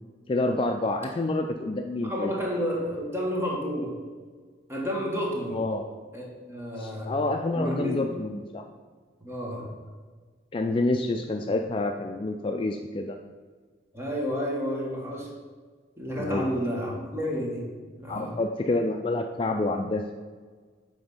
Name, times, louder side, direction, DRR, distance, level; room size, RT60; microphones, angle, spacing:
voice 1, 0.3-2.3 5.5-5.9 6.8-8.6 10.5-13.2 16.2-16.5 18.1-20.0, left 2 dB, 30° left, 4 dB, 0.3 m, -28 dB
voice 2, 2.0-3.9 4.7-5.6 6.1-7.1 7.5-8.2 9.2-9.7 13.9-15.3 16.0-17.7 18.0-18.3, equal, 15° right, -2 dB, 1.4 m, -31 dB
8.8 x 3.4 x 5.5 m, 1.5 s
head